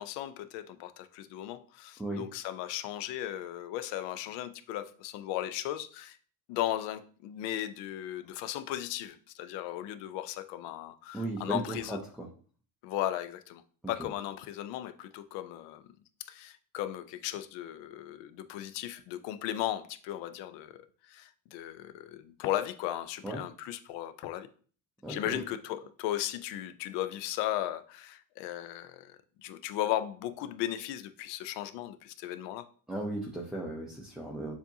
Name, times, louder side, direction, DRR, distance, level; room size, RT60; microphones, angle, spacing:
voice 1, 0.0-6.2 6.5-12.0 12.8-15.8 16.2-24.5 25.1-32.7, left 13 dB, 75° left, 0.6 m, -36 dB
voice 2, 11.1-12.3 14.0-14.1 23.2-23.4 25.0-25.4 32.9-34.5, right 1 dB, ahead, 0.4 m, -36 dB
7.0 x 2.7 x 2.7 m
cardioid pair, 145°, 42 cm